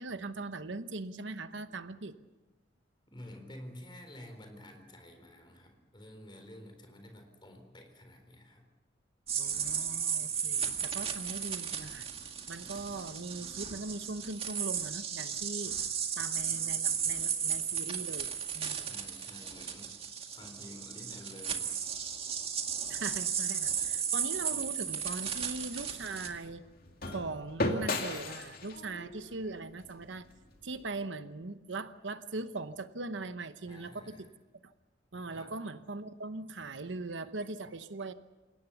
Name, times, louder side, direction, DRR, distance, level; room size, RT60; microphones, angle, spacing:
voice 1, 0.0-2.2 9.4-12.1 12.5-15.8 16.2-18.9 22.8-26.7 27.1-30.2 30.6-34.3 34.6-34.7 35.1-38.1, right 3 dB, 70° right, 11 dB, 0.9 m, -40 dB
voice 2, 3.1-8.6 18.8-22.2 33.7-34.3 35.3-35.5, left 1 dB, 25° left, 5 dB, 4.0 m, -51 dB
sound 1, 9.3-26.3, right 7 dB, 30° right, 2.0 m, -35 dB
sound 2, 24.8-30.9, left 2 dB, 50° left, 2.5 m, -38 dB
28.5 x 17.5 x 7.1 m, 1.2 s
head